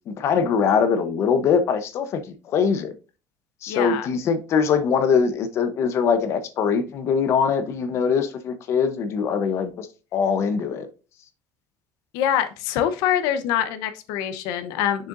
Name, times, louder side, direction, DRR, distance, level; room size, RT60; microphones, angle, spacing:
voice 1, 0.1-2.9 3.6-9.9 10.1-10.9, left 6 dB, 45° left, 0.9 m, -22 dB
voice 2, 3.7-4.1 12.1-15.1, left 10 dB, 85° left, 0.9 m, -24 dB
6.7 x 6.5 x 2.6 m
cardioid pair, 150°, 6 cm